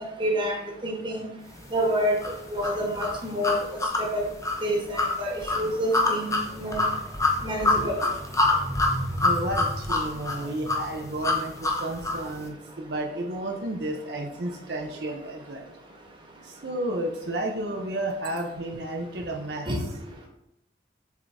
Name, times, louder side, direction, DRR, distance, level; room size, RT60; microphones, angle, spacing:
voice 1, 0.2-1.3 1.7-2.2 2.5-4.3 4.6-6.9 7.4-8.0 19.6-19.8, equal, 30° right, 0 dB, 1.3 m, -28 dB
sound 1, 2.2-12.3, left 2 dB, 20° left, 0.8 m, -26 dB
voice 2, 9.2-15.7 16.4-19.7, right 1 dB, 65° right, 1 dB, 0.7 m, -32 dB
7.2 x 3.8 x 3.4 m, 0.84 s
head